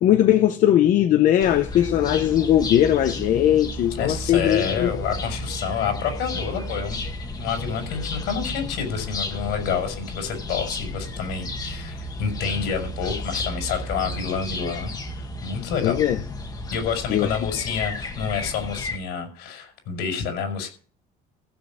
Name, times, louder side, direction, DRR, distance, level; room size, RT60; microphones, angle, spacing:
voice 1, 0.0-4.9 15.8-16.2 17.1-17.3, left 11 dB, 45° left, 0.8 m, -19 dB
sound 1, 1.4-19.0, left 2 dB, 20° left, 1.7 m, -32 dB
voice 2, 3.9-7.0 7.4-16.0 16.7-20.7, left 7 dB, 75° left, 5.7 m, -28 dB
15.5 x 6.5 x 7.3 m
cardioid pair, 165°, 18 cm